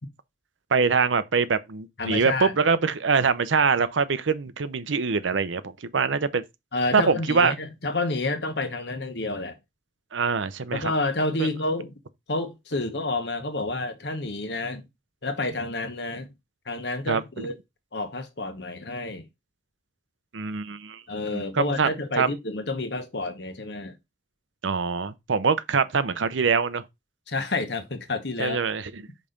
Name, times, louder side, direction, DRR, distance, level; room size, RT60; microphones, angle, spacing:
voice 1, 0.7-6.4 6.9-7.5 10.1-10.9 11.4-11.5 17.1-17.5 20.3-21.0 21.3-21.9 22.2-22.3 24.6-26.8 28.4-29.0, right 5 dB, 90° right, 0.7 m, -24 dB
voice 2, 2.0-2.5 6.7-9.6 10.7-11.9 12.3-14.9 15.2-16.3 16.7-17.5 17.9-19.3 21.1-23.9 27.3-28.6, left 2 dB, 65° left, 1.2 m, -29 dB
5.4 x 4.1 x 5.1 m
head